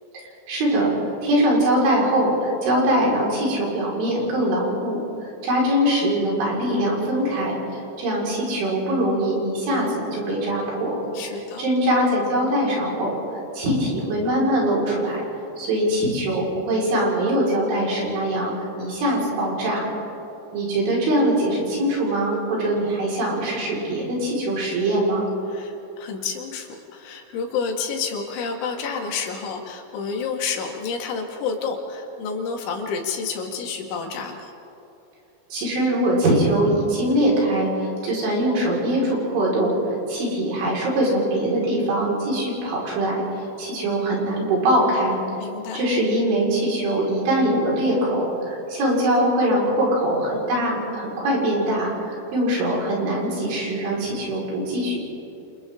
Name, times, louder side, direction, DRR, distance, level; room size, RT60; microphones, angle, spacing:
voice 1, 0.5-0.9 1.2-5.0 5.4-11.0 11.6-13.2 13.5-15.3 15.6-18.5 18.8-19.9 20.5-25.3 35.5-39.8 40.1-45.2 45.7-55.0, right 1 dB, 85° right, -4 dB, 7.7 m, -22 dB
voice 2, 11.1-11.6 25.5-34.5 45.4-45.9, left 5 dB, 90° left, 1 dB, 4.5 m, -29 dB
29.5 x 27.5 x 3.9 m, 2.9 s
omnidirectional pair, 5.3 m